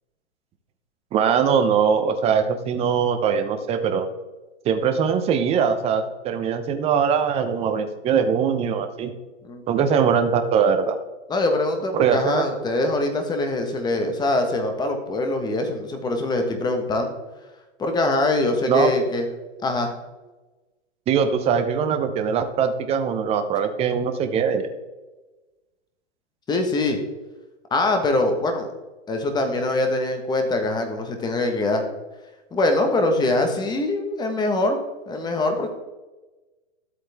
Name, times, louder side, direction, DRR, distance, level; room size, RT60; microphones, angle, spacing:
voice 1, 1.1-4.1 4.6-9.1 9.7-11.0 11.9-12.7 18.7-18.9 21.1-24.7, right 7 dB, 15° right, 8 dB, 0.8 m, -21 dB
voice 2, 11.3-17.1 17.8-19.3 19.6-19.9 26.5-27.0 27.7-28.7 29.1-31.8 32.5-34.8 35.1-35.7, left 2 dB, 10° left, 5 dB, 1.2 m, -23 dB
12.5 x 8.2 x 3.5 m, 1.2 s
hypercardioid pair, 145°, 37 cm